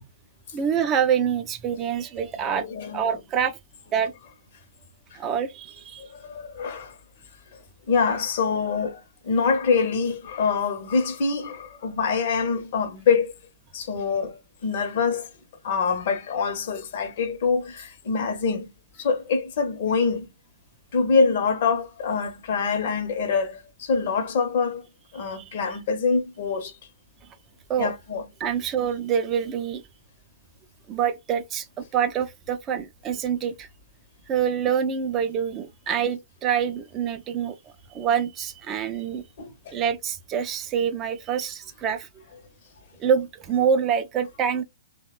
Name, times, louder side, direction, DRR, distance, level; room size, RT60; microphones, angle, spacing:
voice 1, 0.5-2.7 2.9-3.6 3.9-4.1 5.1-6.0 25.2-25.6 27.7-27.9 28.4-29.8 30.9-33.7 34.3-37.6 37.9-39.2 39.7-42.2 43.0-44.6, right 8 dB, 25° right, 0.3 m, -26 dB
voice 2, 2.5-3.0 6.0-6.9 7.9-13.3 13.7-15.3 15.6-18.7 19.0-20.3 20.9-24.8 25.1-26.7 27.8-28.2 39.4-39.5, left 5 dB, 50° left, 0.7 m, -25 dB
2.8 x 2.1 x 2.3 m
figure-of-eight pair, 115°, 0 cm